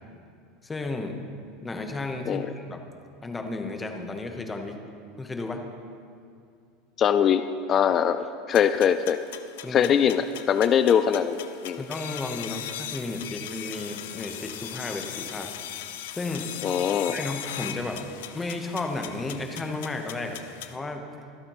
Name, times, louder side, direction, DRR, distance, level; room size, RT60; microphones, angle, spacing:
voice 1, 0.6-1.2 1.6-2.8 3.2-4.8 5.2-5.6 8.2-8.3 9.6-9.9 11.7-15.5 16.1-16.5 17.1-18.1 18.3-21.1, left 2 dB, 10° left, 5 dB, 1.0 m, -33 dB
voice 2, 7.0-7.4 7.7-9.2 9.7-11.4 11.6-11.8 16.6-17.2, left 8 dB, 30° left, 10 dB, 0.3 m, -22 dB
sound 1, 8.5-20.8, left 11 dB, 85° left, 0.6 m, -39 dB
24.5 x 8.7 x 3.1 m, 2.3 s
supercardioid pair, 150°, 0 cm